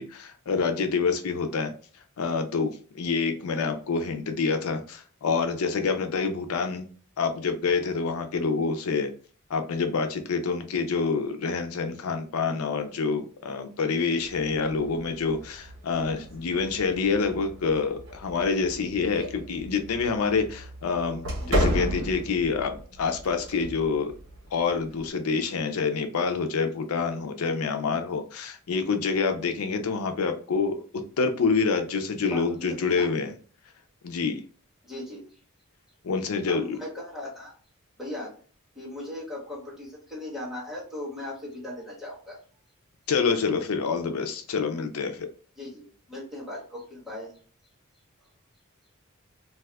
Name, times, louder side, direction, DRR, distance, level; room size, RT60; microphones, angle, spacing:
voice 1, 0.0-1.7 2.2-6.9 7.2-9.1 9.5-24.1 24.5-30.8 31.2-33.3 34.0-34.4 36.0-36.8 43.1-45.3, left 5 dB, 90° left, 6 dB, 0.5 m, -27 dB
sound 1, 14.2-25.1, equal, 65° right, 1.1 m, -34 dB
voice 2, 21.4-21.8 32.2-33.1 34.8-35.4 36.4-37.5 38.0-38.3 38.7-42.4 45.6-47.3, left 1 dB, ahead, -6 dB, 1.5 m, -38 dB
2.7 x 2.3 x 3.3 m, 0.41 s
head